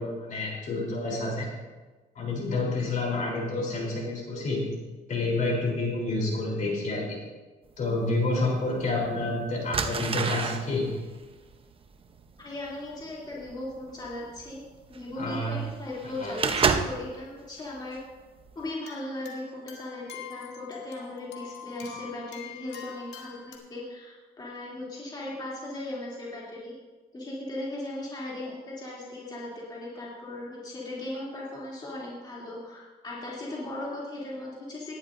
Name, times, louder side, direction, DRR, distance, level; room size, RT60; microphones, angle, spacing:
voice 1, 0.0-1.5 2.2-4.6 5.1-7.2 7.8-10.9 15.2-15.5 16.2-16.3, left 2 dB, 45° left, -1 dB, 3.7 m, -29 dB
sound 1, 8.2-8.3 9.1-9.2 9.7-17.2 17.6-18.0 18.4-18.6, right 5 dB, 30° right, 0.8 m, -30 dB
voice 2, 12.4-14.6 14.9-18.0 18.5-26.8 27.1-35.0, left 1 dB, 25° left, -6 dB, 3.0 m, -37 dB
sound 2, 18.6-23.6, left 7 dB, 90° left, 2.0 m, -45 dB
18.5 x 11.5 x 2.7 m, 1.3 s
cardioid pair, 125°, 17 cm